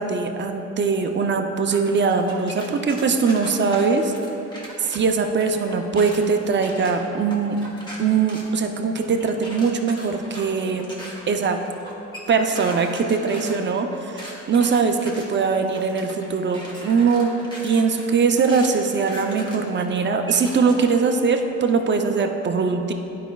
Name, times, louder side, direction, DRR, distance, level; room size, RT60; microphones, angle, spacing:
voice 1, 0.0-4.1 4.8-7.6 8.0-10.9 11.3-11.6 12.3-17.3 17.6-22.9, right 5 dB, 40° right, 5 dB, 0.5 m, -21 dB
sound 1, 1.7-5.0 5.4-21.0, equal, 15° left, 1.3 m, -39 dB
10.5 x 5.0 x 2.3 m, 2.9 s
cardioid pair, 90°, 30 cm